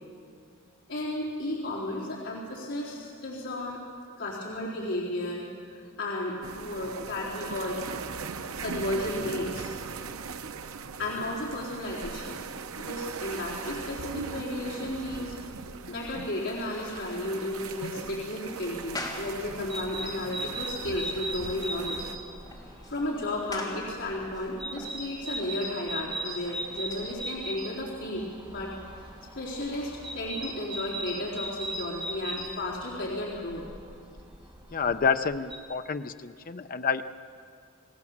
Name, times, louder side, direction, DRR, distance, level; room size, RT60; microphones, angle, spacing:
voice 1, 0.9-3.8 4.2-7.8 8.6-9.7 11.0-12.4 12.8-15.3 15.9-22.0 22.7-28.8 29.4-33.6, left 1 dB, 60° left, -6 dB, 4.1 m, -33 dB
sound 1, 6.4-22.2, right 5 dB, 90° right, 0.8 m, -39 dB
sound 2, 15.3-27.7, left 2 dB, 20° left, 3.2 m, -46 dB
sound 3, 18.7-35.6, right 1 dB, 25° right, 1.9 m, -39 dB
voice 2, 34.7-37.0, left 6 dB, 40° left, 9 dB, 0.6 m, -28 dB
28.5 x 17.5 x 7.3 m, 2.2 s
head